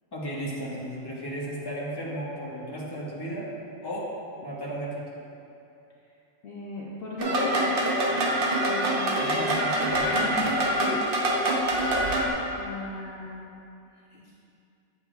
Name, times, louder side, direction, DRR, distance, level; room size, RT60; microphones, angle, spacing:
voice 1, 0.1-3.5 3.8-4.1 4.4-5.0 9.2-10.9, equal, 20° left, -6 dB, 1.1 m, -34 dB
voice 2, 6.4-7.7 8.5-9.5 10.4-11.7 12.6-13.3 13.9-14.3, left 3 dB, 60° left, -5 dB, 0.9 m, -38 dB
sound 1, 7.2-12.3, right 1 dB, 55° right, 0.9 m, -25 dB
8.4 x 7.3 x 2.3 m, 2.7 s
omnidirectional pair, 1.2 m